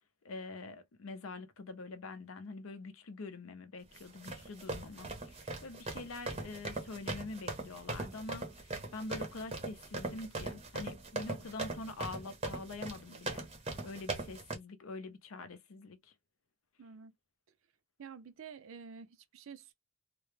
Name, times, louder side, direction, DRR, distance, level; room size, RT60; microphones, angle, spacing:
voice 1, 0.2-13.5 13.8-16.1, left 3 dB, 75° left, 0.5 m, -45 dB
sound 1, 4.0-14.5, right 2 dB, 30° right, 0.6 m, -40 dB
voice 2, 16.8-17.1 18.0-19.7, right 6 dB, 70° right, 0.4 m, -49 dB
2.2 x 2.0 x 3.1 m
head